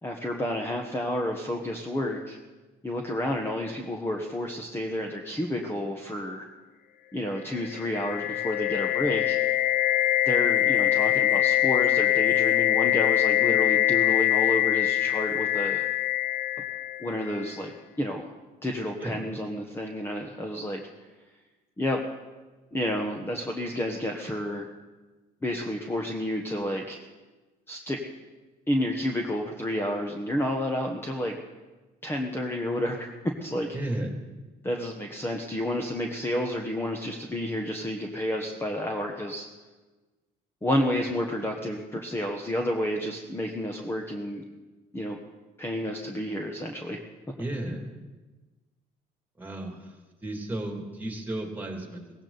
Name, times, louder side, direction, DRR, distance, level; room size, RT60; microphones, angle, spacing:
voice 1, 0.0-2.4 2.8-6.4 7.1-9.4 10.2-15.8 17.0-18.3 18.6-20.8 21.8-22.0 22.7-24.7 25.4-27.0 27.7-28.0 28.7-31.4 32.0-33.1 33.4-33.7 34.6-39.4 40.6-44.4 44.9-45.2 45.6-47.0, left 1 dB, 15° left, 2 dB, 1.3 m, -30 dB
sound 1, 7.6-17.4, left 13 dB, 65° left, 0.5 m, -24 dB
voice 2, 33.7-34.2 47.4-48.0 49.4-50.0 50.2-52.2, right 1 dB, 10° right, 2 dB, 2.8 m, -34 dB
17.0 x 16.0 x 4.1 m, 1.2 s
cardioid pair, 110°, 17 cm